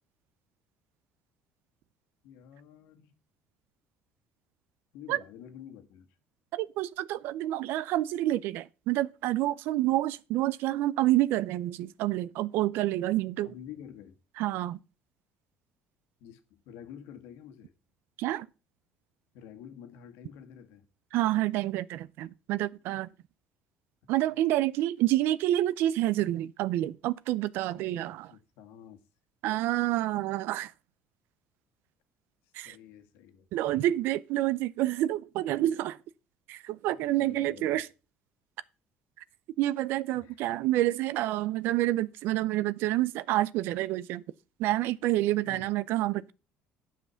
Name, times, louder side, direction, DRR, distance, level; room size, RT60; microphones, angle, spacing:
voice 1, 2.2-3.1 4.9-6.1 13.4-14.2 16.2-17.7 19.3-20.9 24.0-24.1 27.7-29.0 32.6-33.8 36.9-37.8 40.1-40.4 45.5-45.7, left 9 dB, 85° left, 1.6 m, -49 dB
voice 2, 6.5-13.5 14.4-14.8 18.2-18.5 21.1-23.1 24.1-28.3 29.4-30.7 32.5-32.8 33.5-36.0 36.5-37.9 39.6-44.2 44.6-46.3, right 15 dB, 70° right, 0.5 m, -28 dB
9.7 x 5.8 x 5.7 m
cardioid pair, 140°, 4 cm